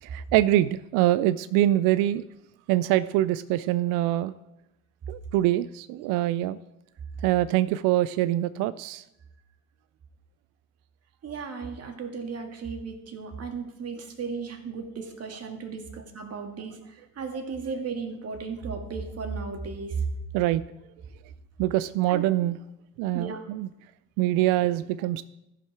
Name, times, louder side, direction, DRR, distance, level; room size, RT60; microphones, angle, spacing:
voice 1, 0.0-2.2 2.7-4.3 5.1-6.6 7.2-9.0 20.3-20.6 21.6-22.6 23.0-23.7 24.2-25.2, right 14 dB, 60° right, 15 dB, 0.5 m, -24 dB
voice 2, 11.2-20.1 22.1-22.2 23.1-23.4, right 5 dB, 35° right, 4 dB, 2.1 m, -35 dB
14.5 x 5.7 x 4.8 m, 0.90 s
hypercardioid pair, 75°, 40 cm